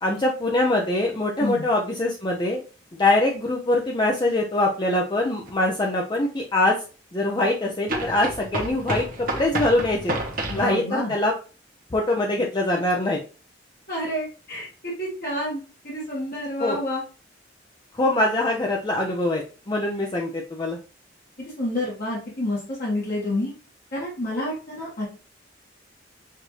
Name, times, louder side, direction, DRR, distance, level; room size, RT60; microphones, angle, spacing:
voice 1, 0.0-2.6 2.9-6.8 7.1-10.1 10.5-11.3 11.9-13.2 16.6-16.8 17.9-20.8, left 2 dB, 25° left, -1 dB, 0.5 m, -23 dB
sound 1, 5.5-5.6 7.9-10.7, right 1 dB, 50° right, 0.9 m, -29 dB
voice 2, 10.5-11.1 13.9-17.0 21.4-23.5 23.9-25.1, left 1 dB, 50° left, -7 dB, 1.6 m, -29 dB
6.5 x 2.6 x 3.1 m, 0.36 s
head